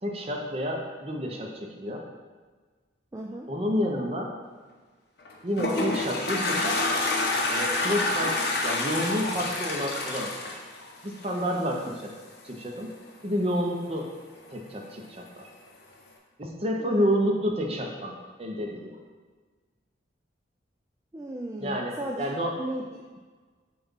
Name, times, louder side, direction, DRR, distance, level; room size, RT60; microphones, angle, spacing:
voice 1, 0.0-2.0 3.5-4.3 5.4-6.8 7.5-10.6 11.0-12.1 12.4-12.9 13.2-14.1 14.5-15.5 16.4-18.1 18.4-19.0 21.6-22.5, equal, 35° right, 0 dB, 0.7 m, -29 dB
voice 2, 3.1-3.5 11.8-11.9 16.8-17.2 21.1-22.3 22.6-23.2, right 1 dB, 15° right, -1 dB, 0.3 m, -36 dB
Toilet flush, 5.2-11.6, left 2 dB, 60° left, 0.7 m, -28 dB
7.1 x 2.4 x 5.5 m, 1.4 s
head